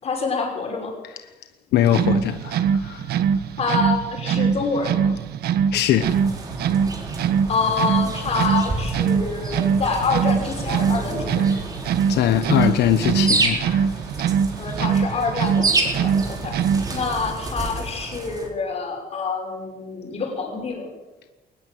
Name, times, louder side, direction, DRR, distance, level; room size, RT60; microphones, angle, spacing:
voice 1, 0.0-0.9 3.6-5.2 7.5-11.5 14.6-16.6 16.9-20.9, left 4 dB, 40° left, 6.0 m, -26 dB
voice 2, 1.7-3.1 5.7-6.3 11.5-11.7 12.1-14.1, left 11 dB, 85° left, 1.2 m, -22 dB
sound 1, 1.8-17.1, right 7 dB, 70° right, 1.4 m, -23 dB
sound 2, 6.0-18.5, right 3 dB, 20° right, 4.2 m, -29 dB
21.5 x 20.0 x 7.8 m
cardioid pair, 160°, 17 cm